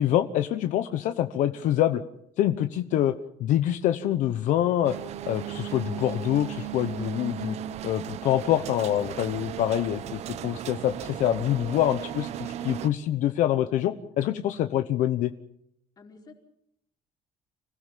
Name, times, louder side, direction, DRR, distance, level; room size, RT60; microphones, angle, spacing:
voice 1, 0.0-2.0 2.4-3.1 3.4-4.9 5.3-7.6 7.8-10.0 10.4-15.3, left 12 dB, 70° left, 9 dB, 1.0 m, -25 dB
voice 2, 1.5-1.9 9.6-10.1 16.0-16.3, left 4 dB, 30° left, 1 dB, 4.5 m, -51 dB
sound 1, 4.8-12.9, right 11 dB, 55° right, 0.9 m, -36 dB
26.0 x 16.5 x 7.5 m, 0.76 s
cardioid pair, 150°, 14 cm